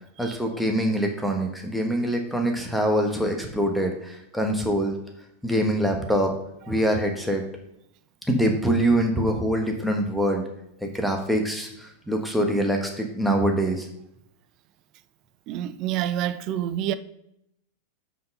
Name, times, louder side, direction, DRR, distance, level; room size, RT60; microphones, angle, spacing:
voice 1, 0.2-5.0 5.4-6.3 6.7-7.4 8.3-10.5 10.8-13.9, right 1 dB, ahead, 1.2 m, -24 dB
voice 2, 15.5-16.9, right 11 dB, 40° right, 0.5 m, -28 dB
7.6 x 4.0 x 5.3 m
figure-of-eight pair, 90°, 0 cm